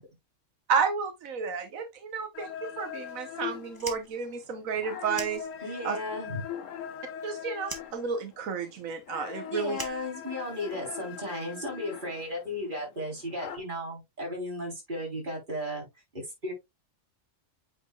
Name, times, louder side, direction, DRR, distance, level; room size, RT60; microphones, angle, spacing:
voice 1, 0.7-5.4 5.8-6.0 7.2-9.8, right 5 dB, 90° right, 1.4 m, -31 dB
sound 1, 2.3-13.6, left 9 dB, 75° left, 1.2 m, -41 dB
Fire, 3.7-6.0 6.3-7.3 7.6-10.8, right 2 dB, 15° right, 1.2 m, -43 dB
voice 2, 5.6-6.4 9.4-15.9 16.1-16.5, left 1 dB, 35° right, 3.7 m, -35 dB
8.5 x 5.7 x 2.3 m
omnidirectional pair, 1.4 m